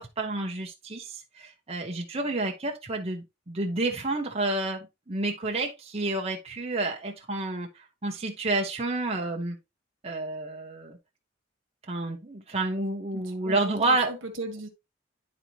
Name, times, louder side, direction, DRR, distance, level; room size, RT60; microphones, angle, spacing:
voice 1, 0.0-9.6 10.0-11.0 11.9-14.1, right 2 dB, 30° right, 0.9 m, -30 dB
voice 2, 13.1-14.7, right 2 dB, 70° right, 1.4 m, -37 dB
11.0 x 4.0 x 2.9 m
head